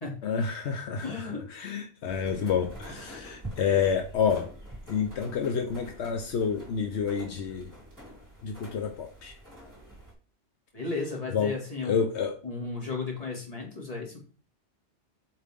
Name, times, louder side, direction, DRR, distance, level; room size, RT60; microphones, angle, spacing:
voice 1, 0.2-4.5 4.9-7.7 8.4-9.4 11.3-11.5 11.8-12.4, left 6 dB, 80° left, 4 dB, 1.0 m, -29 dB
voice 2, 1.0-1.4 10.7-12.1 12.4-14.2, left 4 dB, 35° left, -2 dB, 2.5 m, -34 dB
sound 1, 2.1-10.1, right 1 dB, 15° right, 3.1 m, -46 dB
7.5 x 4.6 x 3.7 m, 0.38 s
omnidirectional pair, 1.1 m